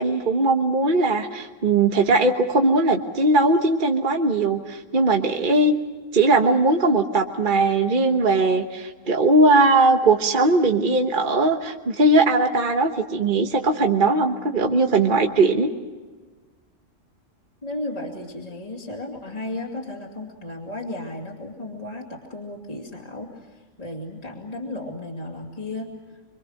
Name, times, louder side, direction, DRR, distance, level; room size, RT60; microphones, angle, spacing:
voice 1, 0.0-5.7 6.1-15.7, right 2 dB, 40° right, 3 dB, 1.4 m, -19 dB
voice 2, 17.6-25.9, left 2 dB, 30° left, -2 dB, 2.9 m, -34 dB
25.5 x 25.0 x 6.5 m, 1.3 s
omnidirectional pair, 1.3 m